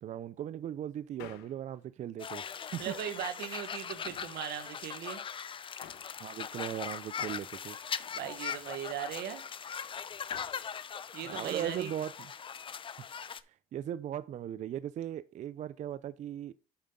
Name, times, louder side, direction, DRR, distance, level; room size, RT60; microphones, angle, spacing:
voice 1, 0.0-2.4 2.7-2.9 6.2-7.8 11.2-12.1 13.3-16.5, right 10 dB, 45° right, 0.4 m, -38 dB
Male speech man speaking, 1.0-1.8 2.7-3.1 3.9-4.7 5.8-6.2 7.2-8.8 10.1-10.7 11.6-11.9 12.2-12.3, left 10 dB, 90° left, 1.2 m, -52 dB
sound 1, 2.2-13.4, left 7 dB, 30° left, 0.5 m, -40 dB
voice 2, 2.8-5.2 8.1-9.4 11.1-11.9, right 10 dB, 80° right, 1.3 m, -38 dB
8.6 x 5.7 x 3.8 m
cardioid pair, 110°, 17 cm